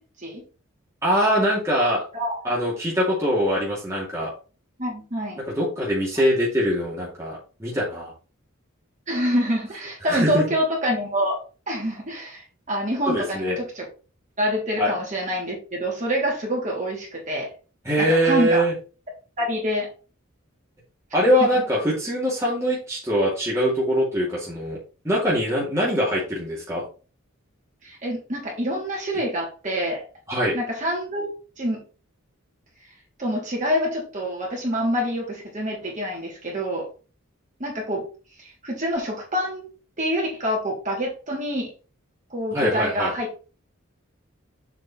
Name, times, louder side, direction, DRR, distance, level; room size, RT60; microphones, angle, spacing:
voice 1, 1.0-2.0 2.4-4.3 5.5-8.1 10.1-10.4 13.1-13.6 14.8-14.9 17.8-18.7 21.1-24.8 25.0-26.8 30.3-30.5 42.5-43.1, equal, 15° right, -6 dB, 2.6 m, -23 dB
voice 2, 2.1-2.5 4.8-5.4 9.1-11.4 11.7-13.8 14.4-17.5 18.0-18.6 19.4-19.9 21.2-21.5 27.8-30.0 30.5-31.3 31.6-31.8 33.2-36.9 37.6-38.0 38.4-39.7 40.0-41.7 42.3-43.3, equal, 35° right, -2 dB, 3.2 m, -26 dB
7.4 x 5.2 x 4.2 m, 0.35 s
head